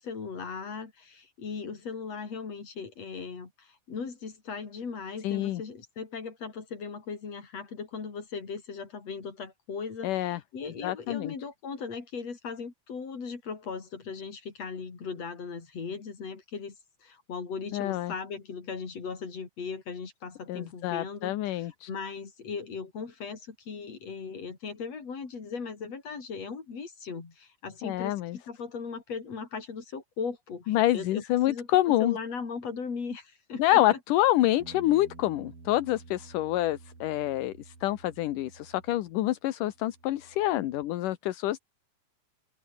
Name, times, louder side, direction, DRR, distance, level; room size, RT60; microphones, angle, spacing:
voice 1, 0.0-16.8 17.0-34.0, left 5 dB, 50° left, 5.2 m, -38 dB
voice 2, 5.2-5.6 10.0-10.4 10.8-11.3 17.7-18.1 20.5-21.9 27.8-28.4 30.7-32.2 33.6-41.6, left 15 dB, 80° left, 2.6 m, -27 dB
Bass guitar, 34.6-39.4 39.7-40.8, right 4 dB, 45° right, 6.3 m, -51 dB
open air
omnidirectional pair, 3.7 m